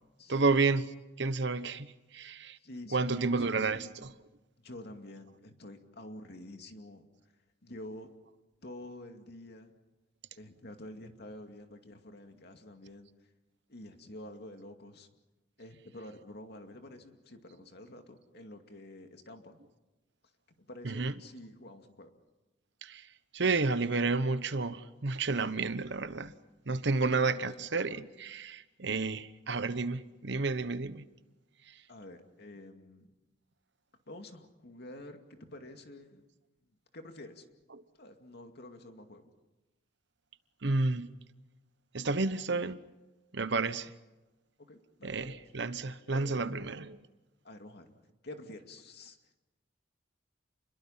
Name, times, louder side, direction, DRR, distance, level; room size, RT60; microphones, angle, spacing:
voice 1, 0.3-0.9 1.2-2.6 2.9-4.1 20.8-21.1 22.8-23.0 23.3-26.3 26.7-31.0 40.6-41.1 41.9-42.8 43.3-43.9 45.0-47.0, right 3 dB, 65° right, 1.0 m, -31 dB
voice 2, 2.6-3.7 4.6-7.0 7.6-8.1 8.6-9.7 10.3-13.1 13.7-15.1 15.6-19.6 20.6-22.1 26.8-27.4 31.9-33.1 34.1-36.2 36.9-37.4 38.0-39.3 44.7-45.4 46.1-46.6 47.4-47.9 48.2-49.2, left 1 dB, 60° left, 2.4 m, -48 dB
29.5 x 22.0 x 5.8 m
head